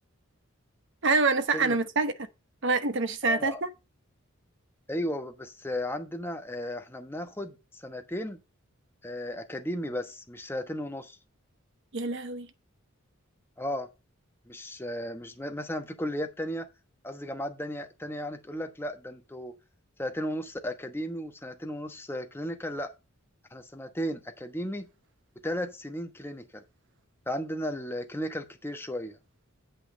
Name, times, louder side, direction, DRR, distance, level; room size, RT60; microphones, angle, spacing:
voice 1, 1.0-2.1 2.6-3.7 11.9-12.5, right 3 dB, 60° right, 1.0 m, -26 dB
voice 2, 3.2-3.6 4.9-8.4 9.0-11.2 13.6-13.9 14.5-16.7 17.0-19.5 20.0-22.9 23.5-24.9 25.4-26.6 27.3-29.2, equal, 10° left, 1.0 m, -35 dB
8.5 x 5.7 x 5.1 m
head